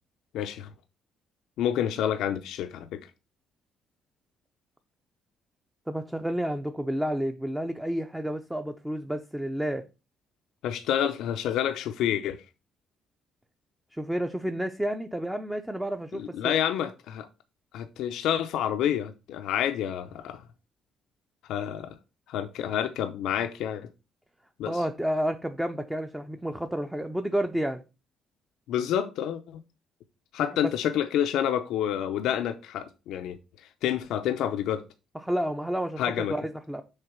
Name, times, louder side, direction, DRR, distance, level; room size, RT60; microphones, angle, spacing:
voice 1, 0.3-0.7 1.6-3.0 10.6-12.4 16.1-17.3 17.7-20.4 21.5-21.9 22.3-23.9 24.6-24.8 28.7-29.6 30.3-33.4 33.8-34.8 36.0-36.3, left 10 dB, 85° left, 0.6 m, -28 dB
voice 2, 5.9-9.8 13.9-16.5 24.6-27.8 30.4-30.5 35.1-36.8, equal, 5° right, 0.5 m, -30 dB
6.6 x 3.9 x 5.9 m
cardioid pair, 145°, 0 cm